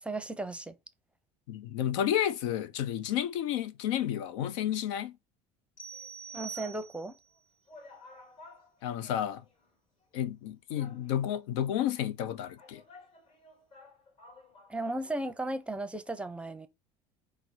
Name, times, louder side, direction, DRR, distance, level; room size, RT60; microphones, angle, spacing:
voice 1, 0.0-0.7 6.3-7.1 14.7-16.7, right 2 dB, 10° right, 0.6 m, -35 dB
voice 2, 1.5-5.2 8.8-9.4 10.1-12.8, left 11 dB, 90° left, 0.5 m, -31 dB
sound 1, 5.8-7.3, right 7 dB, 65° left, 1.2 m, -44 dB
sound 2, 5.9-6.9 7.3-7.4 7.7-9.7 10.0-10.1 10.8-11.5 12.2-15.4 15.7-15.8, left 3 dB, 45° left, 1.5 m, -55 dB
5.2 x 2.0 x 4.5 m
supercardioid pair, 100°, 15 cm